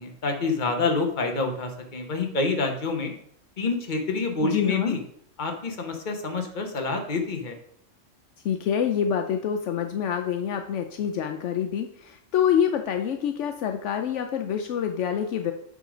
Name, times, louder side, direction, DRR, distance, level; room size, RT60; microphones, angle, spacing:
voice 1, 0.0-3.1 3.6-5.0 5.4-7.5, left 3 dB, 40° left, 4 dB, 1.2 m, -27 dB
voice 2, 4.4-5.0 8.4-15.5, left 8 dB, 75° left, 5 dB, 0.9 m, -26 dB
8.2 x 3.8 x 4.9 m, 0.68 s
omnidirectional pair, 1.3 m